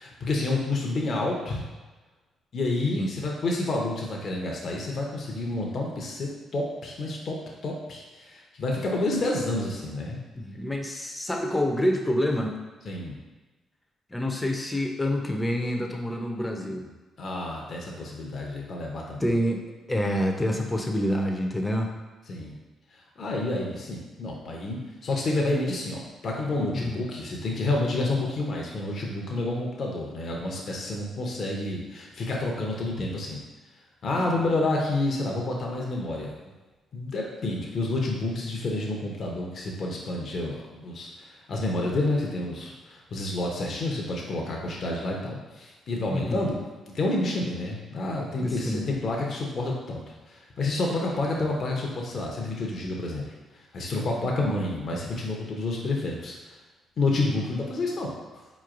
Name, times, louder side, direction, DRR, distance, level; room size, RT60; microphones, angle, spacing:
voice 1, 0.0-1.7 2.5-7.4 7.6-10.2 12.9-13.2 17.2-19.4 22.3-22.6 22.9-33.4 34.0-36.3 36.9-46.5 46.9-50.0 50.3-53.3 53.7-56.5 57.0-58.1, left 2 dB, 55° left, -1 dB, 0.7 m, -29 dB
voice 2, 10.3-12.6 14.1-16.9 19.2-19.6 19.9-21.9 26.7-27.0 34.1-34.5 46.1-46.5 48.4-48.9 54.2-54.3, left 1 dB, 15° left, 3 dB, 0.6 m, -27 dB
4.3 x 3.0 x 2.5 m, 1.2 s
supercardioid pair, 60°, 0 cm